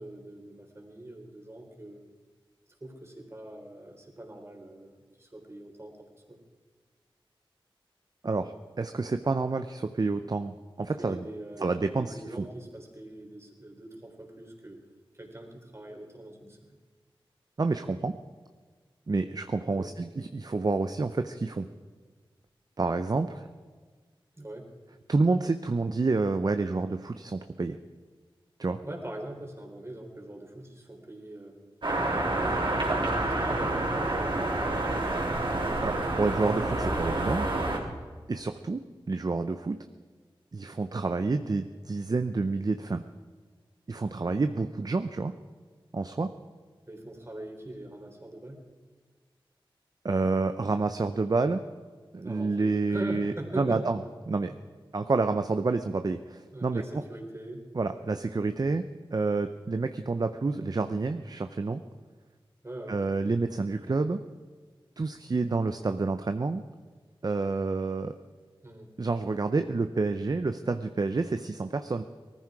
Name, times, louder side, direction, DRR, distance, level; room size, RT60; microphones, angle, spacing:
voice 1, 0.0-2.0 2.8-5.9 6.3-6.4 11.0-14.8 15.1-16.6 19.8-19.9 24.4-24.7 28.8-31.6 32.1-34.8 35.1-35.6 46.9-48.6 52.2-53.9 54.5-54.6 56.5-57.7 62.6-63.0 68.6-68.9, right 1 dB, 30° right, 2 dB, 3.6 m, -42 dB
voice 2, 8.2-11.2 11.6-12.4 17.6-18.1 19.1-21.7 22.8-23.5 25.1-27.8 28.6-28.8 35.8-37.5 38.3-38.8 39.1-39.8 40.5-43.0 43.9-45.3 45.9-46.3 50.0-51.6 52.1-54.0 54.3-54.5 54.9-57.0 57.7-58.8 59.1-61.8 62.9-64.2 65.0-66.6 67.2-68.1 69.0-72.0, right 3 dB, 45° right, 9 dB, 0.7 m, -28 dB
sound 1, 31.8-37.8, right 2 dB, 60° right, 3.9 m, -28 dB
19.0 x 14.5 x 4.8 m, 1.5 s
wide cardioid pair, 65°, 9 cm